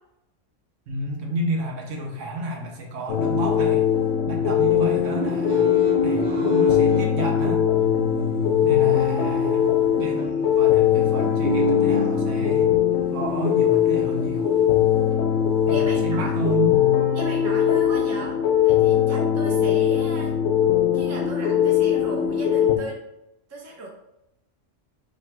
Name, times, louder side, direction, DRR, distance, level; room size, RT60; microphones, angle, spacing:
voice 1, 0.9-3.9 4.3-5.7 6.0-7.7 8.6-9.7 10.0-12.8 13.1-14.6 15.7-16.8 19.5-19.7, right 1 dB, 75° right, 1 dB, 1.1 m, -31 dB
sound 1, 3.0-4.2 4.7-7.1 7.7-12.7 13.6-14.8 15.1-15.2 15.6-16.5, equal, 45° right, 1.3 m, -31 dB
sound 2, 3.1-22.8, left 9 dB, 85° left, 1.0 m, -21 dB
voice 2, 15.7-16.3 17.1-18.4 18.6-20.3 20.9-23.0 23.5-23.9, right 2 dB, 15° right, -2 dB, 0.6 m, -36 dB
3.1 x 2.6 x 4.3 m, 0.87 s
omnidirectional pair, 1.3 m